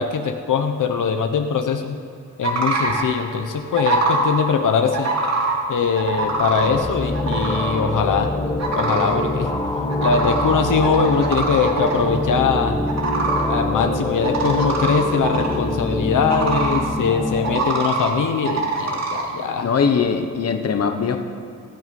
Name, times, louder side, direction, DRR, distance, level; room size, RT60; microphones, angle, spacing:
voice 1, 0.0-2.0 2.4-5.1 5.7-8.3 8.7-9.5 10.0-12.8 13.5-19.7, left 6 dB, 80° left, 6 dB, 1.1 m, -22 dB
sound 1, 2.4-3.1 3.7-4.3 4.9-5.5 5.9-6.7 7.1-7.8 8.6-9.1 9.9-10.5 10.8-12.0 12.9-13.5 14.2-15.6 16.3-16.8 17.4-18.1 18.4-19.2, right 3 dB, 55° right, 2.4 m, -23 dB
sound 2, 6.1-17.6, left 2 dB, 15° left, 1.4 m, -25 dB
voice 2, 19.6-21.2, left 6 dB, 50° left, 6 dB, 1.1 m, -21 dB
25.5 x 9.4 x 5.4 m, 2.4 s
wide cardioid pair, 140°, 31 cm